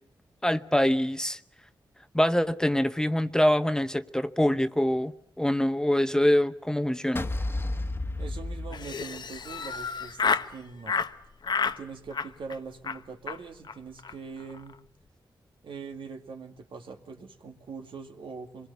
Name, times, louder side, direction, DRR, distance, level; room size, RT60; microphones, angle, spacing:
voice 1, 0.4-1.4 2.1-7.3, left 1 dB, 5° left, 0.9 m, -24 dB
sound 1, 7.1-9.5, left 2 dB, 25° left, 1.3 m, -32 dB
voice 2, 8.2-11.0 11.6-14.8 15.6-18.7, right 5 dB, 85° right, 2.2 m, -42 dB
Laughter, 8.7-10.5 10.9-11.1 11.4-11.8 12.1-12.6 12.8-13.0 13.3-13.4 13.6-13.7 14.0-14.1 14.4-14.7, left 5 dB, 60° left, 0.9 m, -30 dB
25.0 x 21.5 x 8.2 m
cardioid pair, 80°, 9 cm